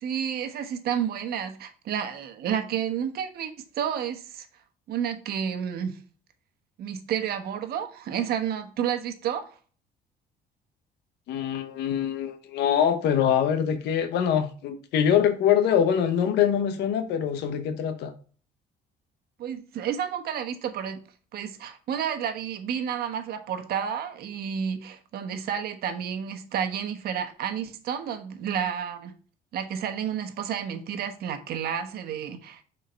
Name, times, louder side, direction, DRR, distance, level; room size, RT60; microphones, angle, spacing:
voice 1, 0.0-4.5 4.9-6.0 6.8-9.5 19.4-21.0 21.3-29.1 29.5-32.6, right 8 dB, 65° right, 1.2 m, -30 dB
voice 2, 11.3-18.1, left 8 dB, 80° left, 0.9 m, -24 dB
6.6 x 4.5 x 4.4 m
cardioid pair, 110°, 17 cm